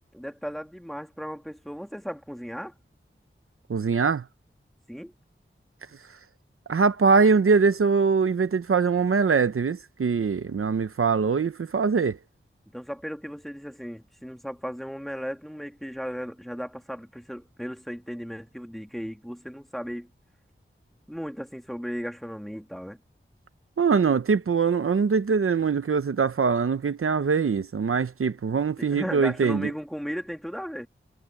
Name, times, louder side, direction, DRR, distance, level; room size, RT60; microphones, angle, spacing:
voice 1, 0.1-2.7 4.9-5.1 12.7-20.1 21.1-23.0 28.8-30.9, equal, ahead, 2.6 m, -36 dB
voice 2, 3.7-4.2 6.7-12.2 23.8-29.7, right 5 dB, 85° right, 0.8 m, -22 dB
wide cardioid pair, 65°, 21 cm